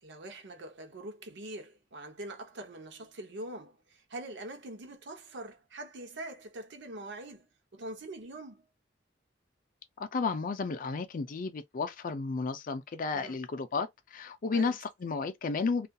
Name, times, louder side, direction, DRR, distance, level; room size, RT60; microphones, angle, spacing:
voice 1, 0.0-7.5 7.7-8.6 13.1-13.4 14.5-14.8, right 1 dB, 65° right, 0.7 m, -43 dB
voice 2, 10.0-15.9, left 4 dB, 45° left, 0.4 m, -33 dB
2.6 x 2.4 x 2.2 m
head